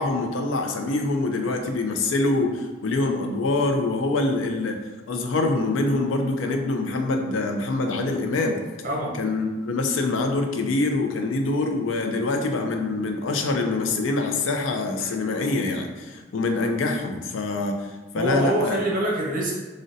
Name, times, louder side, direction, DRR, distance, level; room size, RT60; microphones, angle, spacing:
voice 1, 0.0-4.8 5.1-8.6 9.2-18.8, left 2 dB, 90° left, 4 dB, 0.4 m, -25 dB
voice 2, 8.8-9.2 18.1-19.6, equal, 45° right, -3 dB, 0.8 m, -25 dB
3.8 x 2.1 x 2.5 m, 1.3 s
head